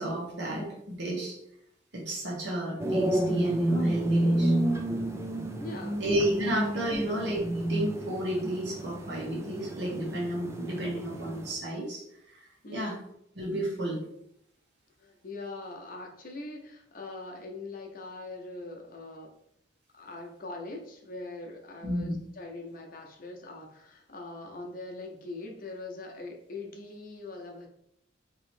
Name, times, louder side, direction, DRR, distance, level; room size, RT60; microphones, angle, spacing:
voice 1, 0.0-1.4 1.9-4.6 6.0-12.0 12.3-13.0 13.3-14.0 21.8-22.2, right 1 dB, 65° right, -3 dB, 1.2 m, -32 dB
sound 1, 2.8-11.5, right 1 dB, 15° right, 0.3 m, -30 dB
voice 2, 5.6-6.0 6.4-6.5 6.9-7.1 12.6-12.9 15.0-19.3 19.9-27.7, left 2 dB, 50° left, 1 dB, 0.8 m, -42 dB
3.1 x 2.9 x 4.3 m, 0.74 s
head